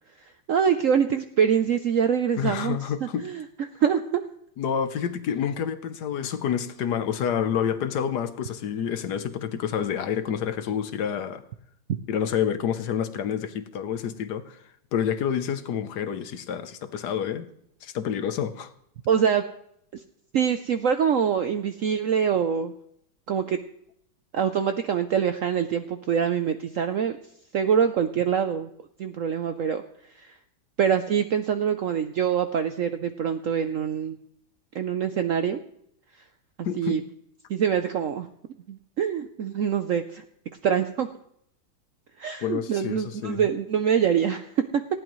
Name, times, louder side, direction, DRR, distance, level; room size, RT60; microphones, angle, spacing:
voice 1, 0.2-4.2 19.1-19.4 19.9-20.0 20.3-22.7 23.3-23.6 24.3-27.2 27.5-28.7 29.0-29.8 30.1-30.4 30.8-34.2 34.7-35.6 36.8-37.0 37.5-38.3 38.7-40.2 40.6-41.1 42.2-44.8, right 8 dB, 70° right, 8 dB, 0.8 m, -25 dB
voice 2, 2.4-3.3 4.6-11.4 12.1-14.6 14.9-17.5 17.8-18.7 36.6-37.0 42.4-43.4, left 8 dB, 65° left, 11 dB, 1.3 m, -28 dB
19.0 x 15.0 x 3.1 m, 0.72 s
omnidirectional pair, 2.0 m